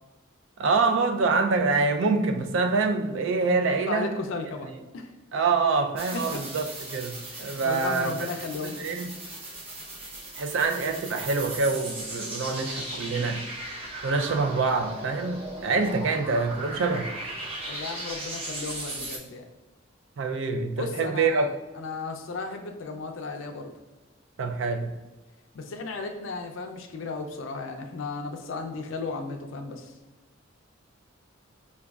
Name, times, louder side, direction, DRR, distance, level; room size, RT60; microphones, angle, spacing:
voice 1, 0.6-4.1 5.3-8.1 8.6-9.1 10.4-13.4 14.0-17.1 20.2-21.5 24.4-24.9, right 4 dB, 65° right, 0.4 m, -25 dB
voice 2, 3.9-5.1 6.1-6.4 7.3-8.8 17.7-19.5 20.8-21.5 21.7-23.7 25.5-29.9, left 3 dB, 70° left, 0.4 m, -35 dB
sound 1, 6.0-19.2, right 2 dB, 30° right, 0.7 m, -38 dB
4.9 x 2.3 x 2.3 m
head